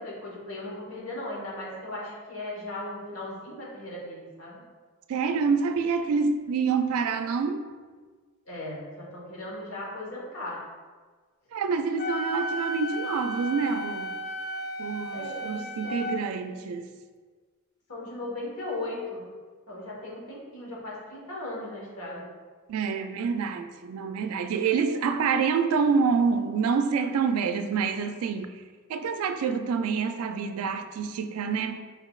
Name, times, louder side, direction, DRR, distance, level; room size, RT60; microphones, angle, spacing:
voice 1, 0.0-4.6 8.5-10.6 15.1-16.6 17.9-19.3 19.7-22.3, left 1 dB, 80° left, 1.2 m, -37 dB
voice 2, 5.1-7.7 11.5-14.2 14.8-16.9 22.7-28.6 28.9-31.9, right 5 dB, 80° right, 0.3 m, -27 dB
Wind instrument woodwind instrument, 12.0-16.2, equal, 45° left, 0.3 m, -34 dB
4.4 x 4.0 x 2.3 m
head